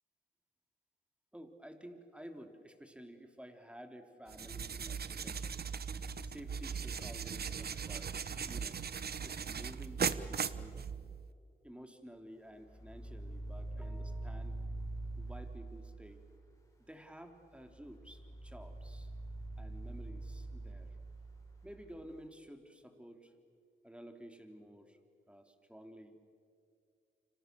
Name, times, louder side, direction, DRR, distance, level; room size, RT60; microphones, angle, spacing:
voice 1, 1.3-5.4 6.2-8.2 8.4-8.8 9.2-10.8 11.6-14.6 15.2-16.2 16.8-19.1 19.6-21.0 21.6-23.3 23.8-25.0 25.3-26.2, equal, 5° right, 5 dB, 3.4 m, -52 dB
sound 1, 4.3-11.3, right 6 dB, 55° right, 1.0 m, -39 dB
sound 2, 12.6-16.3 17.6-22.0, right 1 dB, 15° left, 5.8 m, -44 dB
29.5 x 26.0 x 7.0 m, 2.3 s
cardioid pair, 65°, 19 cm